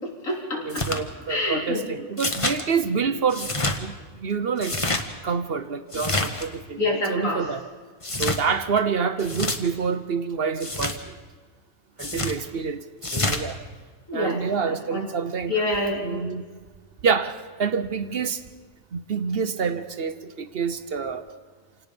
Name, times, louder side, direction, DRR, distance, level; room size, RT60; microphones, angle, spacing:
voice 1, 0.0-0.8 1.3-1.8 6.8-7.4 14.1-14.4 14.7-15.0 15.5-16.2, left 2 dB, 60° left, -1 dB, 4.0 m, -27 dB
voice 2, 0.6-3.5 3.8-4.7 5.2-7.6 8.1-11.2 12.0-12.8 13.1-13.6 14.1-15.6 15.9-16.4 17.0-18.4 18.9-21.2, right 6 dB, 50° right, 11 dB, 0.9 m, -27 dB
sound 1, 0.7-1.0 2.2-2.6 3.3-3.8 4.6-5.0 5.9-6.5 8.0-8.4 9.2-9.6 10.6-11.0 12.0-12.4 13.0-13.4, left 2 dB, 25° left, 1.2 m, -27 dB
27.5 x 18.0 x 5.3 m, 1.5 s
omnidirectional pair, 1.6 m